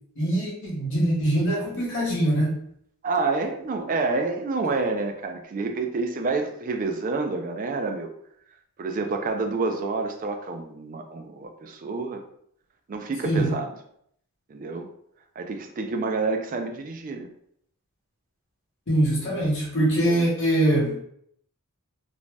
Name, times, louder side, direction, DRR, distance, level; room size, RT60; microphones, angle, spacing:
voice 1, 0.2-2.6 13.2-13.5 18.9-21.0, right 1 dB, 60° left, -5 dB, 0.9 m, -23 dB
voice 2, 3.0-8.1 8.8-12.2 12.9-13.7 14.5-14.9 15.4-17.3 20.1-20.3, right 3 dB, 40° right, 5 dB, 0.3 m, -28 dB
2.5 x 2.1 x 3.2 m, 0.70 s
head